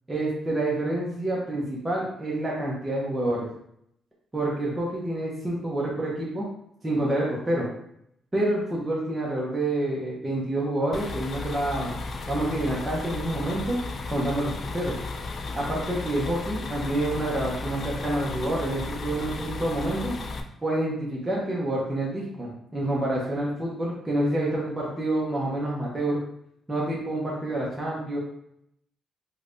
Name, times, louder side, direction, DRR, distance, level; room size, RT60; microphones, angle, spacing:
voice 1, 0.1-3.5 4.3-6.5 6.8-7.7 8.3-11.9 12.3-13.8 14.1-14.9 15.5-20.2 20.6-26.2 26.7-28.2, right 1 dB, 15° right, -5 dB, 0.9 m, -28 dB
sound 1, 10.9-20.4, left 3 dB, 45° left, 0.4 m, -34 dB
3.2 x 3.2 x 2.6 m, 0.74 s
cardioid pair, 90°, 0 cm